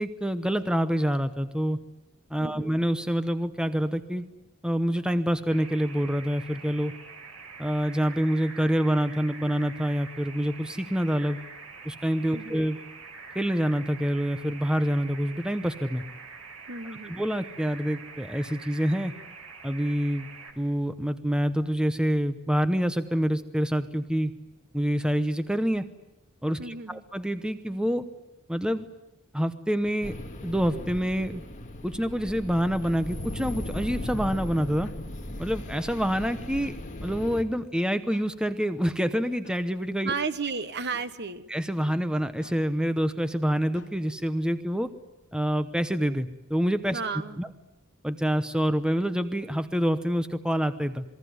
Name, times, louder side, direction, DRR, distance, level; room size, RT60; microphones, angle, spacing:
voice 1, 0.0-1.8 2.3-4.3 4.6-6.9 7.6-11.4 11.8-12.8 13.3-16.0 17.1-19.1 19.6-20.3 20.6-24.3 24.7-25.8 26.4-28.1 28.5-28.9 29.3-30.1 30.4-31.4 31.8-34.9 35.4-36.7 37.0-40.1 41.5-44.9 45.3-47.0 47.4-47.5 48.0-51.0, equal, 5° right, 11 dB, 0.9 m, -27 dB
voice 2, 2.4-2.7 12.3-12.6 16.7-17.2 26.6-27.0 40.0-41.5 46.9-47.4, right 5 dB, 50° right, 12 dB, 1.3 m, -33 dB
sound 1, 5.5-20.5, right 5 dB, 85° right, 5.0 m, -45 dB
sound 2, 30.0-37.4, left 1 dB, 35° left, 2.0 m, -37 dB
sound 3, 32.8-33.0 34.7-35.0 36.6-36.8 38.1-38.3 39.4-39.6 40.9-41.1 42.4-42.6 43.7-44.0, left 3 dB, 55° left, 3.0 m, -51 dB
27.5 x 21.0 x 9.5 m, 0.96 s
head